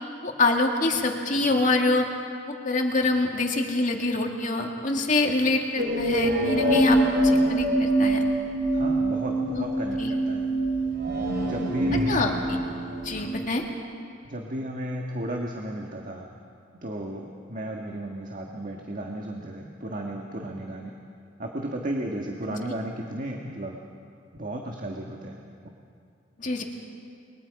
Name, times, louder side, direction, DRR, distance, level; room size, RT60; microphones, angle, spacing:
voice 1, 0.2-2.1 2.5-8.2 9.5-9.7 10.0-10.2 12.1-12.6 13.0-13.6 22.5-22.6 26.4-26.6, left 2 dB, 40° left, 2 dB, 2.2 m, -25 dB
sound 1, 5.8-13.4, right 1 dB, 60° right, 3.4 m, -25 dB
voice 2, 8.7-10.5 11.4-12.2 14.2-16.3 16.7-20.9 21.4-23.8 24.3-25.4, right 1 dB, 45° right, 0 dB, 1.6 m, -33 dB
29.5 x 22.5 x 4.9 m, 2.4 s
head